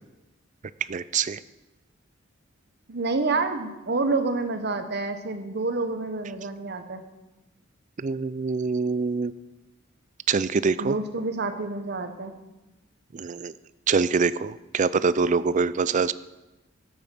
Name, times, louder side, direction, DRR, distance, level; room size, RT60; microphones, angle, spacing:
voice 1, 0.9-1.4 8.0-9.3 10.3-10.9 13.1-13.5 13.9-16.1, right 5 dB, 40° right, 16 dB, 0.4 m, -24 dB
voice 2, 2.9-7.0 10.8-12.3, right 3 dB, 55° right, 8 dB, 1.1 m, -28 dB
12.5 x 8.6 x 6.1 m, 1.0 s
head